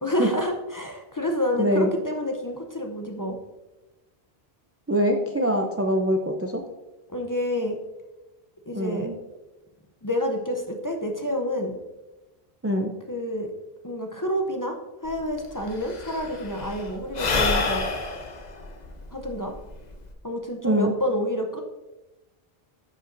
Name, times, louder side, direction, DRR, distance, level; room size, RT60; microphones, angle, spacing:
voice 1, 0.0-3.4 7.1-7.8 8.7-9.1 10.0-11.8 13.1-13.5 13.8-14.8 15.0-17.9 19.1-19.5 20.2-21.6, left 1 dB, 25° left, 2 dB, 0.6 m, -28 dB
voice 2, 1.6-1.9 4.9-6.6 8.7-9.1 12.6-12.9 20.6-20.9, equal, 25° right, 3 dB, 0.3 m, -23 dB
Sigh / Breathing, 15.1-15.2 15.4-20.1, left 3 dB, 45° left, 0.8 m, -28 dB
11.0 x 5.3 x 2.6 m, 1.1 s
omnidirectional pair, 1.1 m